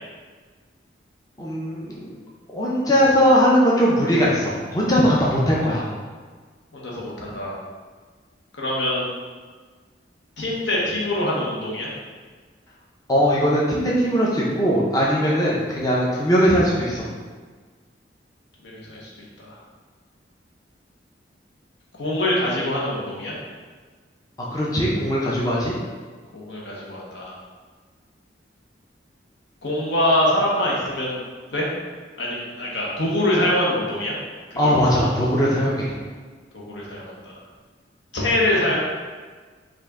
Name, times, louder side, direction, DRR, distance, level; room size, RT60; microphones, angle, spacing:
voice 1, 1.4-2.1 2.5-5.9 13.1-17.1 24.5-25.7 34.6-35.9, equal, 20° left, -5 dB, 0.5 m, -20 dB
voice 2, 6.7-7.6 8.6-9.1 10.4-11.9 18.6-19.6 22.0-23.3 26.3-27.3 29.6-31.2 31.5-31.7 32.2-34.2 34.5-35.0 36.5-37.3 38.1-38.8, left 1 dB, 75° left, -4 dB, 1.1 m, -24 dB
5.2 x 2.6 x 3.6 m, 1.5 s
head